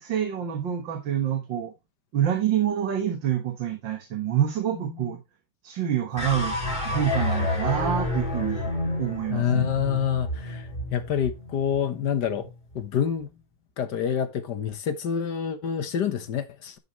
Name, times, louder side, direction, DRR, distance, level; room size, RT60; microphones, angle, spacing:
voice 1, 0.0-1.7 2.1-5.2 5.6-6.6 6.8-9.6, right 10 dB, 75° right, 2.2 m, -27 dB
sound 1, 6.2-12.5, left 2 dB, 25° left, 3.3 m, -29 dB
voice 2, 9.3-12.5 12.7-13.3 13.8-16.8, left 8 dB, 65° left, 1.7 m, -27 dB
11.0 x 6.9 x 3.2 m
omnidirectional pair, 2.0 m